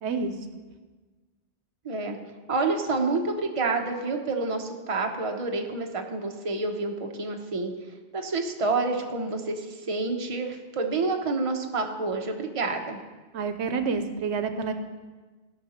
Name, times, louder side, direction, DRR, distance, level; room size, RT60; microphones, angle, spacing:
voice 1, 0.0-0.3 13.3-14.7, right 5 dB, 80° right, 8 dB, 1.0 m, -28 dB
voice 2, 1.8-2.2 2.5-7.7 8.1-13.0, right 3 dB, 30° right, 2 dB, 0.9 m, -28 dB
16.0 x 5.8 x 4.3 m, 1.3 s
omnidirectional pair, 1.2 m